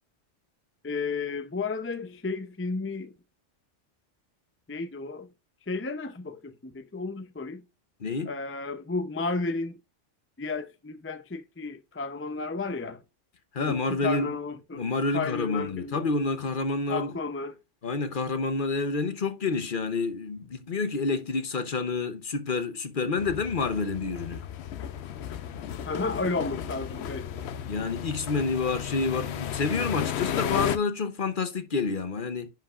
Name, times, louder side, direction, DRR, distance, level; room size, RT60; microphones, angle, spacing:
voice 1, 0.8-3.1 4.7-5.3 5.7-7.6 8.2-9.8 10.4-13.0 13.6-16.1 16.9-17.6 25.9-27.3, left 3 dB, 15° left, 0.5 m, -33 dB
voice 2, 8.0-8.3 13.5-14.3 14.7-17.1 17.8-24.4 27.7-32.5, left 4 dB, 50° left, 0.9 m, -28 dB
sound 1, 23.2-30.8, left 9 dB, 70° left, 0.9 m, -34 dB
10.5 x 5.2 x 2.4 m
omnidirectional pair, 1.2 m